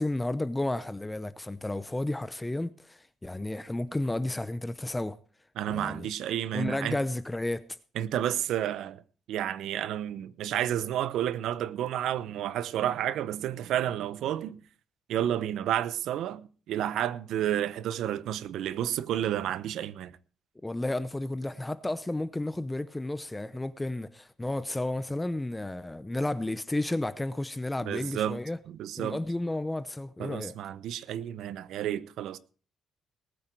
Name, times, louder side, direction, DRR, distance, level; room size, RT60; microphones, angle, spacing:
voice 1, 0.0-5.2 5.7-6.1 6.5-7.6 20.6-28.6 29.0-30.5, left 1 dB, 10° left, 0.7 m, -32 dB
voice 2, 5.6-7.0 7.9-9.0 9.3-14.6 15.1-20.1 27.8-28.4 28.7-29.2 30.2-32.4, right 11 dB, 80° right, 0.7 m, -31 dB
19.0 x 9.3 x 4.5 m
cardioid pair, 90°, 0 cm